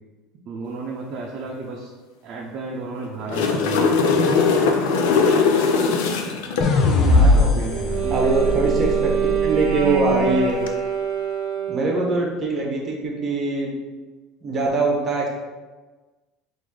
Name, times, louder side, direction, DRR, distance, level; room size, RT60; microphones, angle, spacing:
voice 1, 0.5-1.9 2.2-4.7 6.8-9.1, right 3 dB, 50° right, -2 dB, 0.6 m, -33 dB
sound 1, 3.1-6.7 10.5-10.7, left 4 dB, 90° left, 0.5 m, -19 dB
sound 2, 6.6-9.9, left 2 dB, 45° left, 0.6 m, -20 dB
voice 2, 7.1-7.6 8.1-9.1 9.4-10.6 11.7-13.7 14.4-15.3, right 3 dB, 25° right, -1 dB, 1.0 m, -23 dB
Wind instrument woodwind instrument, 7.7-12.2, right 8 dB, 85° right, 0.7 m, -25 dB
3.9 x 2.6 x 4.7 m, 1.3 s
cardioid pair, 145°, 0 cm